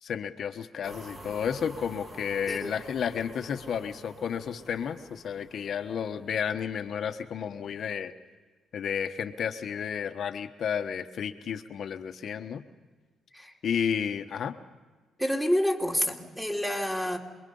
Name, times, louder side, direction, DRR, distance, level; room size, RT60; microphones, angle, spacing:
voice 1, 0.0-8.1 8.7-12.6 13.6-14.6, left 7 dB, 60° left, 7 dB, 1.4 m, -32 dB
sound 1, 0.8-7.1, right 1 dB, 40° right, 6.6 m, -48 dB
voice 2, 15.2-17.2, equal, 5° right, 1 dB, 3.0 m, -28 dB
27.0 x 22.0 x 5.6 m, 1.3 s
cardioid pair, 90°, 0 cm